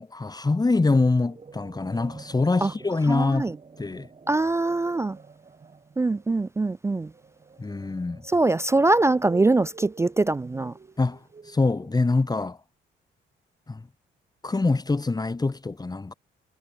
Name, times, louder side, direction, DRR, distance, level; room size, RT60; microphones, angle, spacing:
voice 1, 0.0-4.1 7.6-8.2 11.0-12.6 13.7-13.9 14.4-16.1, left 3 dB, 20° left, 2.1 m, -25 dB
sound 1, 1.0-12.3, right 4 dB, 30° right, 2.8 m, -48 dB
voice 2, 3.1-3.5 4.3-5.2 6.0-7.1 8.3-10.7, right 2 dB, 15° right, 0.3 m, -23 dB
cardioid pair, 90°, 20 cm